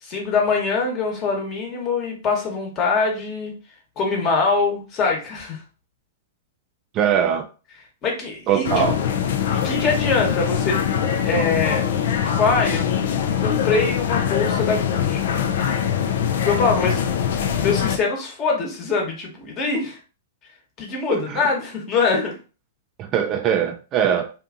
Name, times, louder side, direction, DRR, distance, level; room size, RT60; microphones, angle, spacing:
voice 1, 0.0-3.5 4.0-5.6 8.0-8.9 9.5-10.8 11.2-11.9 12.4-12.9 13.4-15.3 16.4-17.0 17.5-20.0 20.8-22.3, left 4 dB, 35° left, 1.1 m, -23 dB
voice 2, 6.9-7.5 8.5-9.0 21.1-21.4 23.0-24.3, right 8 dB, 35° right, 0.4 m, -21 dB
sound 1, 8.6-18.0, left 8 dB, 65° left, 0.3 m, -22 dB
2.6 x 2.5 x 2.5 m
hypercardioid pair, 125°, 0 cm